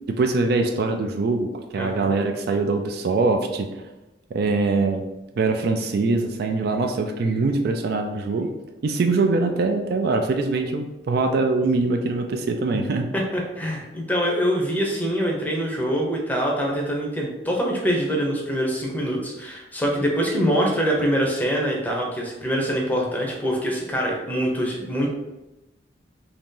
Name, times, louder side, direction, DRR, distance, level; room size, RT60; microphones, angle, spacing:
voice 1, 0.1-3.7 4.3-5.0 5.4-8.5 8.8-13.1, right 3 dB, 55° right, 5 dB, 0.3 m, -23 dB
voice 2, 1.8-2.1 13.1-25.1, equal, 10° left, -1 dB, 0.6 m, -24 dB
2.9 x 2.7 x 3.7 m, 1.0 s
head